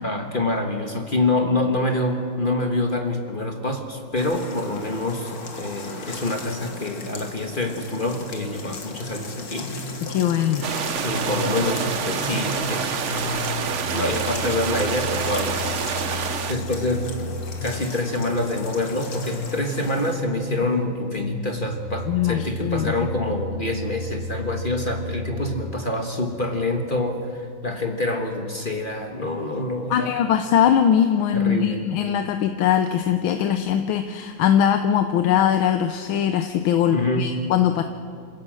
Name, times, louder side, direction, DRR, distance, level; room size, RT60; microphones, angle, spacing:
voice 1, 0.0-10.0 11.0-13.4 13.9-15.8 16.5-17.2 17.6-30.2 31.3-31.8 36.9-37.3, left 2 dB, 30° left, 4 dB, 1.3 m, -26 dB
sound 1, 4.2-20.2, left 4 dB, 50° left, 2.1 m, -37 dB
sound 2, 9.6-25.6, left 1 dB, 75° right, 4.7 m, -34 dB
voice 2, 10.0-10.7 22.1-23.1 29.9-37.8, left 9 dB, 85° left, 7 dB, 1.6 m, -21 dB
sound 3, 10.6-16.5, right 7 dB, 50° right, 0.9 m, -27 dB
27.5 x 16.5 x 6.3 m, 2.3 s
omnidirectional pair, 2.1 m